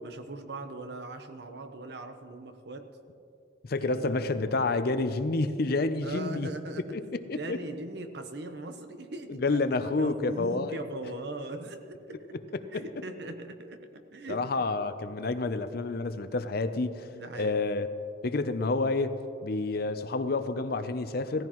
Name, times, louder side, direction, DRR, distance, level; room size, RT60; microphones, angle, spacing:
voice 1, 0.0-2.9 3.8-4.2 6.0-7.0 7.3-9.6 9.9-12.4 12.7-14.7 17.1-17.6, right 2 dB, 60° right, 7 dB, 0.9 m, -40 dB
voice 2, 3.6-6.5 6.9-7.0 7.3-7.6 9.3-10.8 12.7-12.8 14.3-17.9 18.2-21.5, left 3 dB, 55° left, 11 dB, 0.6 m, -29 dB
17.0 x 14.5 x 3.1 m, 2.5 s
head